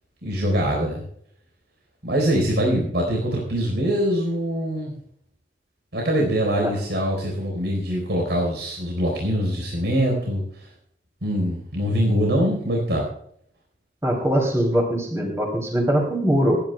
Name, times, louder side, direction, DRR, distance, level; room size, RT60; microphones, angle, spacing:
voice 1, 0.2-1.0 2.0-4.9 5.9-10.4 11.2-13.1, equal, 75° right, -1 dB, 4.3 m, -23 dB
voice 2, 14.0-16.6, equal, 15° right, 1 dB, 2.9 m, -21 dB
27.0 x 10.5 x 2.3 m, 0.68 s
head